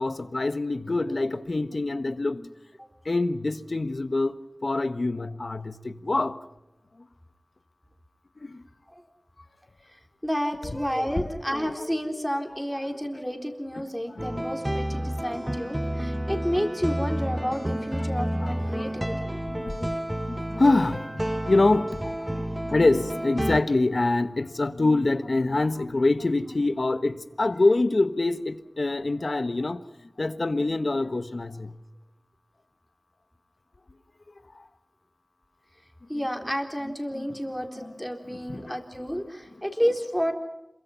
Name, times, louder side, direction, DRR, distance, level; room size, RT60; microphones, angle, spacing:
voice 1, 0.0-2.5 3.0-4.3 4.6-6.4 8.4-8.6 10.7-10.8 11.2-11.3 11.5-11.7 13.7-14.4 15.4-15.7 17.4-19.1 19.5-29.8 30.2-31.8 34.5-34.6 36.8-37.4 37.7-38.8, left 2 dB, 55° left, 1.4 m, -26 dB
voice 2, 10.2-19.4 36.1-40.3, equal, ahead, 3.9 m, -30 dB
sound 1, 14.2-23.6, right 1 dB, 15° right, 1.2 m, -30 dB
27.5 x 23.5 x 5.8 m
wide cardioid pair, 50°, 0 cm